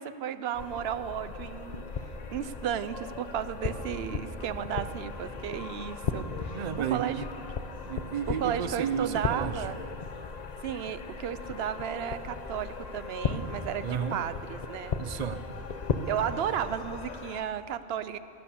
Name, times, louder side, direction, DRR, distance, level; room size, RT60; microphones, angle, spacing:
voice 1, 0.0-1.8 2.3-6.6 6.9-7.2 8.3-9.8 10.6-15.0 16.1-18.2, right 9 dB, 75° right, 13 dB, 0.8 m, -34 dB
sound 1, 0.5-17.4, left 4 dB, 45° left, 0.8 m, -37 dB
voice 2, 6.5-7.3 7.8-9.7 13.8-14.2 15.0-15.4, right 8 dB, 50° right, 13 dB, 0.6 m, -32 dB
17.0 x 11.0 x 7.0 m, 2.6 s
omnidirectional pair, 1.1 m